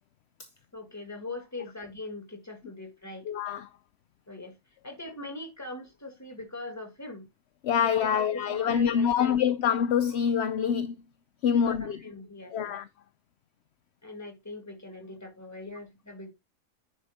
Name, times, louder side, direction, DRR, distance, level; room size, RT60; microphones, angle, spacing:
voice 1, 0.7-3.3 4.3-7.3 7.8-9.4 11.5-12.8 14.0-16.3, left 2 dB, 10° left, 2.0 m, -41 dB
voice 2, 3.3-3.7 7.6-10.9 11.4-12.0 12.5-12.8, left 8 dB, 65° left, 0.8 m, -25 dB
10.0 x 4.3 x 4.1 m
omnidirectional pair, 1.4 m